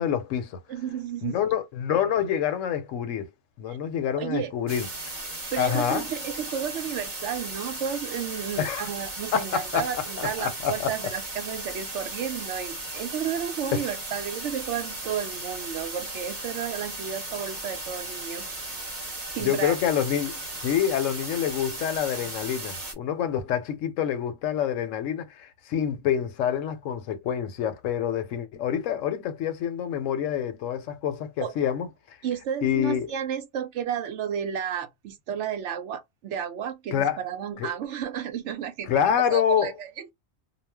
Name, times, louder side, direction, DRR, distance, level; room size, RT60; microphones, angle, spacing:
voice 1, 0.0-0.6 1.2-3.2 3.6-4.9 5.6-6.1 8.6-8.9 9.3-10.9 13.7-13.8 19.4-32.2 32.6-33.1 36.9-37.2 37.6-37.7 38.9-39.7, left 9 dB, 80° left, 1.0 m, -27 dB
voice 2, 0.7-1.4 3.7-3.8 4.2-4.5 5.5-18.5 19.3-19.8 31.4-31.5 32.2-38.9 39.3-40.1, right 8 dB, 70° right, 0.9 m, -32 dB
sound 1, 4.7-22.9, right 2 dB, 40° right, 0.9 m, -36 dB
2.4 x 2.1 x 3.3 m
omnidirectional pair, 1.3 m